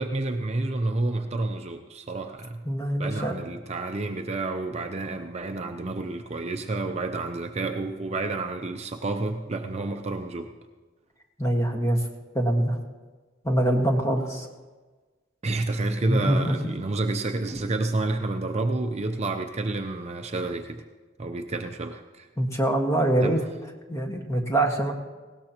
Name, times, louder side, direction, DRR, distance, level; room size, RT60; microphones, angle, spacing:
voice 1, 0.0-2.6 3.0-10.5 15.4-20.8 21.2-22.3 23.2-23.5, right 2 dB, 30° right, 5 dB, 0.6 m, -29 dB
voice 2, 2.6-3.3 11.4-12.0 12.3-12.8 13.4-14.5 16.1-16.4 17.5-17.6 22.4-23.4 23.9-24.9, right 1 dB, 15° left, 1 dB, 1.6 m, -24 dB
19.5 x 17.0 x 2.9 m, 1.3 s
head